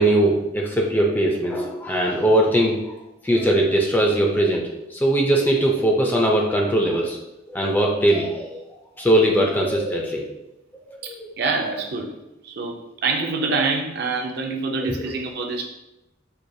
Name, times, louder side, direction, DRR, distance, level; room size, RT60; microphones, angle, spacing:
voice 1, 0.0-2.8 3.2-7.2 7.5-8.6 9.0-10.3 10.9-11.4 14.7-15.0, right 1 dB, 10° left, 0 dB, 0.4 m, -20 dB
voice 2, 11.0-12.1 12.4-15.7, right 4 dB, 55° right, 2 dB, 0.5 m, -26 dB
4.6 x 2.4 x 2.6 m, 0.90 s
head